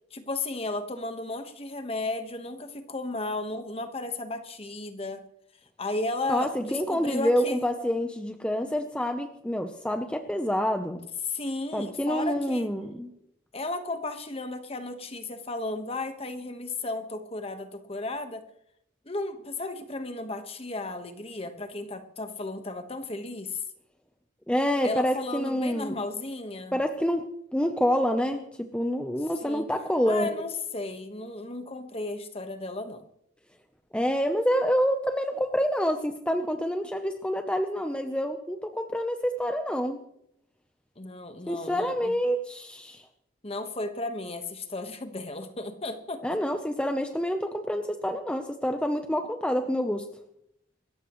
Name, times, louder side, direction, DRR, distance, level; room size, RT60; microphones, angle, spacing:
voice 1, 0.1-5.2 5.8-7.6 11.3-12.7 13.5-18.4 19.0-23.6 24.8-26.8 29.4-29.7 30.1-33.0 41.0-42.1 43.4-46.4, left 2 dB, 30° left, 7 dB, 1.4 m, -34 dB
voice 2, 6.3-11.1 11.7-13.1 24.5-25.9 26.7-30.4 33.9-40.0 41.5-43.0 46.2-50.1, equal, 5° left, 5 dB, 0.8 m, -27 dB
27.0 x 14.0 x 3.2 m, 0.74 s
head